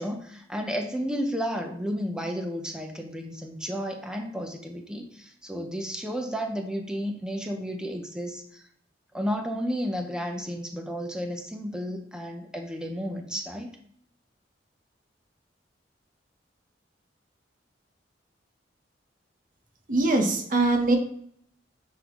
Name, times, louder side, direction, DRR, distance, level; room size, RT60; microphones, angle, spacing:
voice 1, 0.0-8.6 9.1-13.7, equal, 5° right, 3 dB, 0.8 m, -32 dB
voice 2, 19.9-21.0, right 2 dB, 50° right, 4 dB, 1.1 m, -22 dB
9.7 x 3.8 x 3.1 m, 0.64 s
head